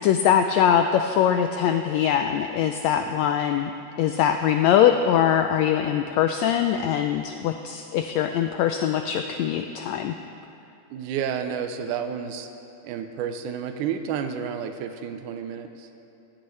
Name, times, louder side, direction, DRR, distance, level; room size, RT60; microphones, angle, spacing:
voice 1, 0.0-3.7 4.0-10.1, left 9 dB, 80° left, 7 dB, 1.6 m, -22 dB
voice 2, 10.9-12.5 12.8-15.9, right 7 dB, 80° right, 7 dB, 2.2 m, -31 dB
16.5 x 16.0 x 3.2 m, 2.8 s
omnidirectional pair, 3.6 m